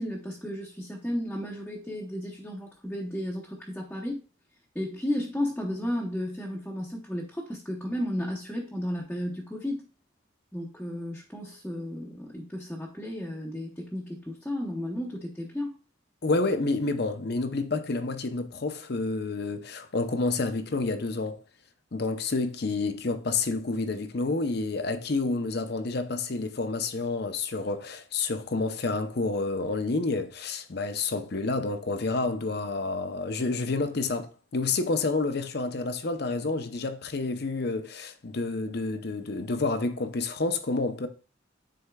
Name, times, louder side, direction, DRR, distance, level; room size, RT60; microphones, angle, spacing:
voice 1, 0.0-4.2 4.7-9.9 10.5-15.8, left 1 dB, 5° left, 0.8 m, -33 dB
voice 2, 16.2-21.4 21.9-41.1, left 3 dB, 55° left, 0.7 m, -29 dB
10.0 x 4.3 x 2.3 m
head